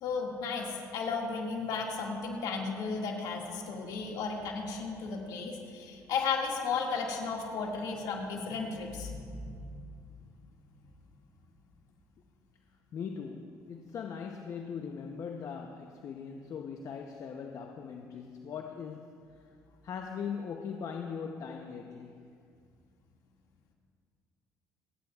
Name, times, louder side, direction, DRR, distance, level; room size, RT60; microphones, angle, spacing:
voice 1, 0.0-9.8 10.1-10.2, left 4 dB, 70° left, 0 dB, 2.0 m, -34 dB
voice 2, 12.9-19.5 19.8-22.3, left 6 dB, 55° left, 4 dB, 0.7 m, -40 dB
27.5 x 9.4 x 2.4 m, 2.3 s
supercardioid pair, 85°, 7 cm